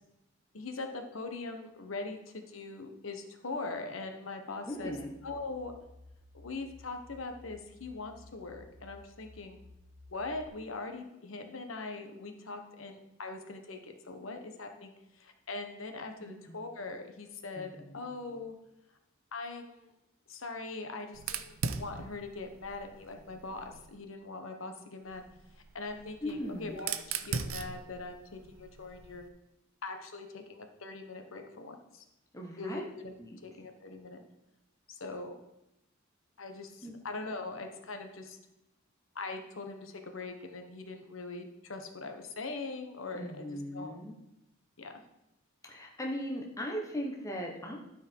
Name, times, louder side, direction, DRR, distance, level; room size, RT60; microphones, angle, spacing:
voice 1, 0.5-4.9 5.2-5.7 6.3-9.6 10.1-18.5 19.3-19.9 20.3-25.2 25.7-26.9 27.2-29.3 29.8-32.0 32.6-33.1 33.4-34.2 34.9-35.3 36.4-38.4 39.1-43.4 43.7-44.0 44.8-44.9, left 3 dB, 75° left, 5 dB, 1.1 m, -41 dB
voice 2, 4.6-5.1 16.2-16.6 17.5-18.0 26.2-26.9 32.3-32.9 33.2-33.4 36.8-36.9 43.1-44.2 45.6-47.8, equal, 15° left, 0 dB, 1.1 m, -39 dB
sound 1, 4.7-10.5, left 2 dB, 55° right, 1.6 m, -56 dB
Fire, 21.1-23.9 25.1-29.3, right 5 dB, 85° right, 0.6 m, -40 dB
12.5 x 4.9 x 4.5 m, 0.89 s
head